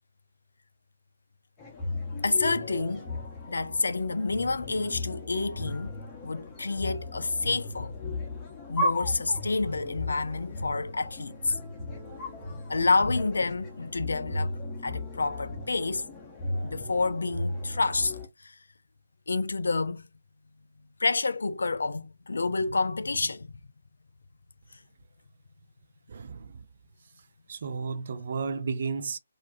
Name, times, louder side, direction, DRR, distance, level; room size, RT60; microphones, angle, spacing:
sound 1, 1.6-18.3, left 2 dB, 20° left, 0.7 m, -36 dB
voice 1, 2.2-3.1 3.5-5.9 6.2-8.0 8.7-11.6 12.7-16.1 16.6-18.2 18.4-18.5 19.3-20.0 21.0-23.5, left 3 dB, 70° left, 0.3 m, -28 dB
voice 2, 26.1-26.6 27.5-29.2, right 5 dB, 50° right, 0.3 m, -33 dB
2.4 x 2.2 x 2.2 m
figure-of-eight pair, 140°, 0 cm